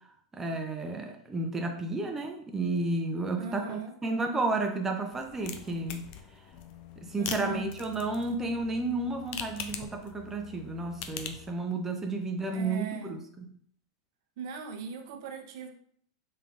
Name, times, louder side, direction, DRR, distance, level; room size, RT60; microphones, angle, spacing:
voice 1, 0.3-6.1 7.0-13.5, right 2 dB, 15° right, 0.4 m, -32 dB
voice 2, 3.4-3.9 7.2-7.7 12.5-13.2 14.4-15.7, right 6 dB, 60° right, 0.6 m, -38 dB
sound 1, 5.1-11.5, left 8 dB, 50° left, 0.5 m, -42 dB
3.3 x 3.3 x 2.4 m
hypercardioid pair, 100°, 2 cm